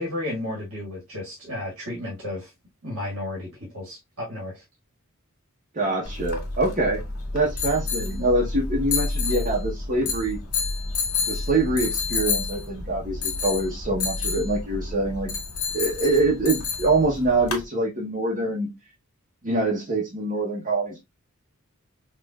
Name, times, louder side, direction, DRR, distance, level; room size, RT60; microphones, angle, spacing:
voice 1, 0.0-2.5 2.8-4.6, left 1 dB, 85° right, 1.8 m, -33 dB
voice 2, 5.7-7.0 7.3-10.4 11.3-15.3 15.7-18.7 19.4-21.0, right 2 dB, 35° right, 0.9 m, -24 dB
sound 1, 6.1-17.6, left 4 dB, 75° left, 1.6 m, -29 dB
5.3 x 2.5 x 2.3 m
head